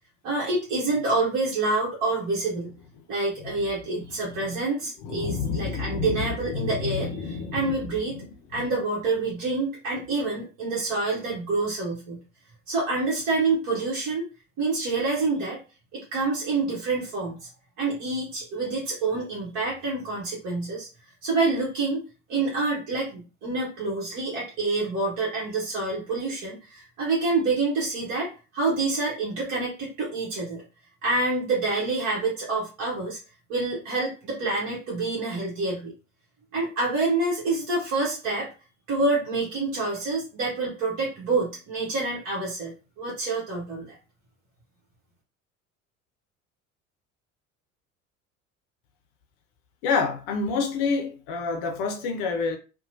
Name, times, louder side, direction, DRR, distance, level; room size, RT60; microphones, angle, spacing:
voice 1, 0.2-2.8 3.1-8.2 8.5-12.2 12.7-14.3 14.6-15.6 15.9-17.5 17.8-20.9 21.2-22.0 22.3-28.3 28.5-30.6 31.0-33.2 33.5-35.9 36.5-38.5 38.9-43.9, right 3 dB, 50° right, 1.1 m, -27 dB
voice 2, 5.0-7.8 49.8-52.6, left 5 dB, 50° left, 0.6 m, -28 dB
2.9 x 2.2 x 2.6 m
figure-of-eight pair, 65°, 39 cm